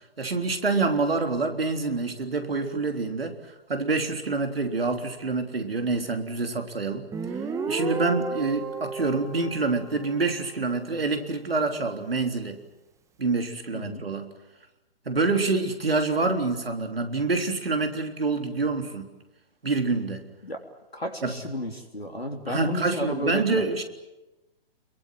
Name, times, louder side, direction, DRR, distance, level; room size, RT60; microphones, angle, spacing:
voice 1, 0.2-3.4 3.7-7.1 7.7-12.6 13.2-14.3 15.1-19.1 19.6-20.2 21.2-21.4 22.5-23.8, right 3 dB, 75° right, 5 dB, 3.6 m, -26 dB
Guitar, 7.1-10.6, right 4 dB, 10° right, 1.9 m, -33 dB
voice 2, 20.9-23.6, equal, 90° left, 3 dB, 3.5 m, -32 dB
29.5 x 22.5 x 7.6 m, 1.0 s
figure-of-eight pair, 125°, 30 cm